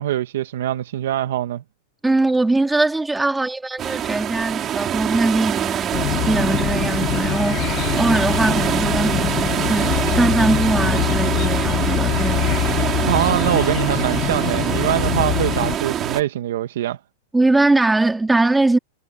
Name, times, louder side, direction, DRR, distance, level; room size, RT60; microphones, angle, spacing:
voice 1, 0.0-1.6 13.0-17.0, right 12 dB, 75° right, 1.2 m, -23 dB
voice 2, 2.0-12.5 17.3-18.8, right 2 dB, 5° right, 3.4 m, -21 dB
sound 1, 3.8-16.2, right 10 dB, 25° right, 4.1 m, -24 dB
sound 2, 5.9-15.8, left 19 dB, 40° left, 1.1 m, -24 dB
supercardioid pair, 150°, 0 cm